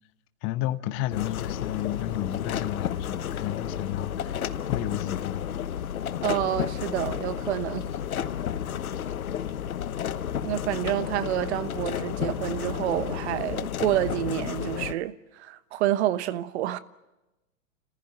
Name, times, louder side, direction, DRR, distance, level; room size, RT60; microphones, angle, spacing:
voice 1, 0.4-5.4, left 13 dB, 30° left, 1.1 m, -32 dB
sound 1, 1.1-14.9, left 9 dB, 90° left, 1.1 m, -32 dB
voice 2, 6.2-7.9 10.4-16.8, right 13 dB, 50° right, 1.1 m, -28 dB
29.5 x 15.0 x 8.7 m
hypercardioid pair, 135°, 41 cm